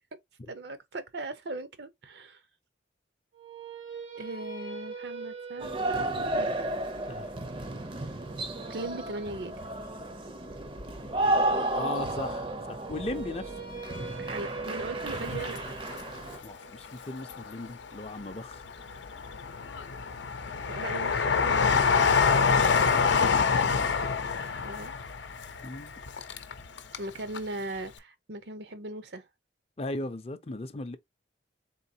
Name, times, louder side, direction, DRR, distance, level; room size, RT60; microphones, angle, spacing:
voice 1, 0.5-2.4 4.1-6.5 8.7-9.5 14.2-15.6 20.7-22.9 24.6-24.9 27.0-29.3, right 2 dB, 65° right, 0.7 m, -39 dB
sound 1, 3.3-9.5 12.7-18.8, right 4 dB, 90° right, 1.4 m, -43 dB
sound 2, 5.6-16.4, right 2 dB, 25° right, 0.5 m, -32 dB
voice 2, 11.0-13.6 16.4-18.6 22.9-24.0 25.6-25.9 29.8-31.0, left 2 dB, 30° left, 0.5 m, -38 dB
Train, 15.1-16.4 16.8-17.8 18.3-27.1 27.3-27.4, left 5 dB, 80° left, 0.6 m, -26 dB
3.9 x 3.8 x 2.7 m
head